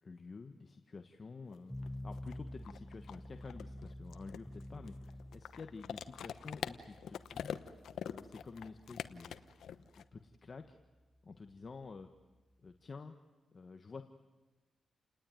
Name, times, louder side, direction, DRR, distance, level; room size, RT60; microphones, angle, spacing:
voice 1, 0.0-7.6 8.0-9.3 9.8-10.8 11.2-12.1 12.6-13.2 13.5-14.0, left 4 dB, 40° left, 6 dB, 1.3 m, -50 dB
sound 1, 1.5-1.6 1.8-10.0, left 9 dB, 85° left, 1.0 m, -44 dB
sound 2, 1.7-12.9, left 1 dB, ahead, 1.2 m, -51 dB
30.0 x 19.5 x 9.3 m, 1.3 s
cardioid pair, 90°, 0 cm